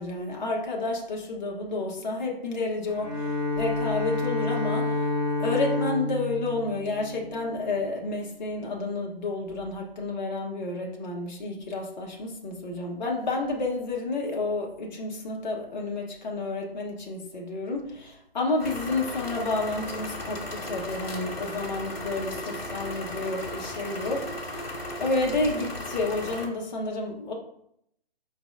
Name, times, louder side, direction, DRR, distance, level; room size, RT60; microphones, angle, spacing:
voice 1, 0.0-3.3 3.6-5.0 5.4-24.6 25.0-27.3, left 2 dB, 45° left, -1 dB, 1.1 m, -30 dB
Bowed string instrument, 2.9-7.8, left 2 dB, 10° left, 0.5 m, -29 dB
sound 1, 18.6-26.5, left 1 dB, 75° left, 1.6 m, -36 dB
5.1 x 3.9 x 2.5 m, 0.72 s
figure-of-eight pair, 145°, 30 cm